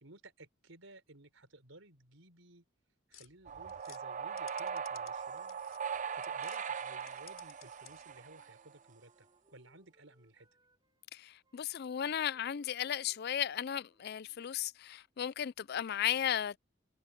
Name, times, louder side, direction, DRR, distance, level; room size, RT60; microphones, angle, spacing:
voice 1, 0.0-2.6 3.1-5.6 6.1-10.5, right 2 dB, 75° right, 5.0 m, -57 dB
sound 1, 3.1-6.6 6.9-8.2, left 13 dB, 85° left, 3.5 m, -58 dB
sound 2, 3.5-8.7, right 7 dB, 40° right, 0.6 m, -40 dB
Wind instrument woodwind instrument, 7.8-11.1 11.4-15.1, right 1 dB, 20° right, 6.4 m, -74 dB
voice 2, 11.1-16.6, left 10 dB, 50° left, 0.4 m, -35 dB
head